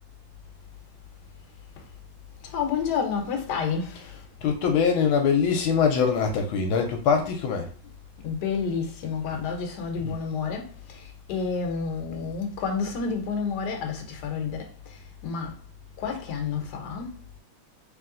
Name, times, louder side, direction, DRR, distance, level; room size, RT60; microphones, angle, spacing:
voice 1, 2.4-4.2 8.2-15.6 16.0-17.2, left 5 dB, 60° left, 1.3 m, -30 dB
voice 2, 4.4-7.7 9.3-9.4 10.0-10.1, left 6 dB, 80° left, 1.5 m, -23 dB
3.3 x 3.2 x 3.8 m
omnidirectional pair, 2.3 m